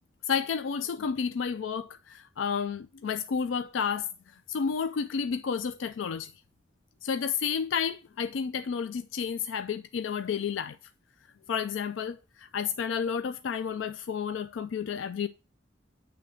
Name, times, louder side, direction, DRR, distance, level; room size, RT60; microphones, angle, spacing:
voice 1, 0.2-6.3 7.0-10.8 11.5-15.3, left 6 dB, 80° left, 0.4 m, -31 dB
8.9 x 3.4 x 6.2 m
head